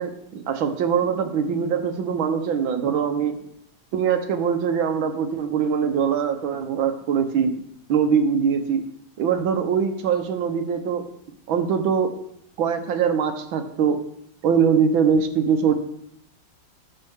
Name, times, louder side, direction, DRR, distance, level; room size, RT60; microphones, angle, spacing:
voice 1, 0.0-3.4 3.9-7.6 7.9-8.8 9.2-11.1 11.5-12.2 12.6-14.0 14.4-15.7, right 7 dB, 80° right, 7 dB, 1.8 m, -22 dB
19.0 x 6.7 x 3.6 m, 0.76 s
omnidirectional pair, 2.2 m